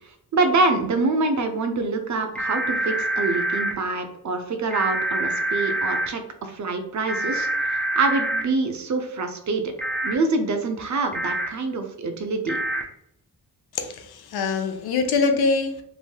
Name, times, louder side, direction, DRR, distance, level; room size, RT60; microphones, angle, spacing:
voice 1, 0.3-7.5 8.0-9.7 10.0-12.6, right 3 dB, 50° right, 6 dB, 0.5 m, -25 dB
sound 1, 2.4-3.7 4.7-6.1 7.1-8.4 9.8-10.1 11.1-11.5 12.5-12.8, right 1 dB, 5° left, 0.5 m, -26 dB
voice 2, 13.7-15.8, left 4 dB, 75° left, 6 dB, 0.6 m, -24 dB
3.1 x 2.7 x 2.2 m, 0.72 s
cardioid pair, 85°, 38 cm